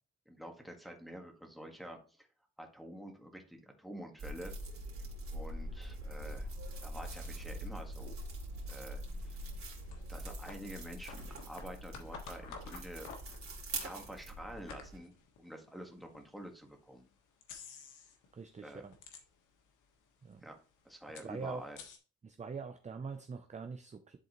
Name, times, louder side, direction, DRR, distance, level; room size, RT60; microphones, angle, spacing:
voice 1, 0.3-2.3 2.6-4.5 5.3-6.5 6.8-8.2 8.7-9.5 10.1-13.1 13.7-17.1 18.6-18.8 20.4-20.6 20.9-21.8, equal, ahead, 2 dB, 1.7 m, -48 dB
sound 1, 4.2-15.0, right 1 dB, 45° right, 2.7 m, -43 dB
sound 2, 7.2-16.3 16.8-16.9 17.4-18.3 18.6-19.7 20.0-20.1 20.2-22.0, left 5 dB, 85° left, 1.4 m, -53 dB
voice 2, 18.3-18.9 20.2-20.4 21.2-21.7 22.2-24.2, right 5 dB, 25° right, 7 dB, 0.6 m, -43 dB
11.0 x 3.9 x 3.0 m, 0.38 s
cardioid pair, 90°, 30 cm